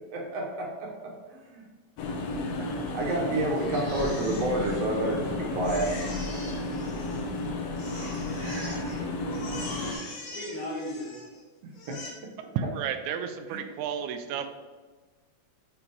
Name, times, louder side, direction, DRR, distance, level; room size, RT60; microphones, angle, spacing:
voice 1, 0.1-0.9 1.3-1.7 2.6-5.9 8.3-8.9 11.9-12.0 13.5-13.6, right 2 dB, 65° right, -1 dB, 2.0 m, -30 dB
sound 1, 2.0-9.9, left 2 dB, 70° left, 1.7 m, -32 dB
Crying sobbing, 3.6-5.3 5.6-7.4 7.8-9.0 9.3-11.4 11.7-12.1, left 2 dB, 85° left, 3.0 m, -43 dB
voice 2, 8.7-10.0 10.3-11.2, left 1 dB, 35° left, -8 dB, 1.7 m, -39 dB
voice 3, 12.6-14.5, right 8 dB, 85° right, 8 dB, 2.0 m, -32 dB
6.7 x 3.9 x 4.6 m, 1.3 s
omnidirectional pair, 3.3 m